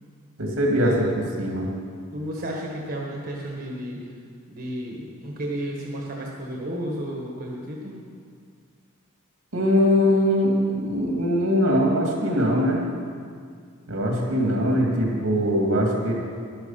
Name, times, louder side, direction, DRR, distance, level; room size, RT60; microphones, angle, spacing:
voice 1, 0.4-1.7 9.5-12.8 13.9-16.1, equal, 75° right, -1 dB, 2.5 m, -22 dB
voice 2, 2.1-4.0 4.5-8.0, right 1 dB, 45° right, -2 dB, 1.5 m, -32 dB
11.5 x 11.0 x 5.8 m, 2.1 s
head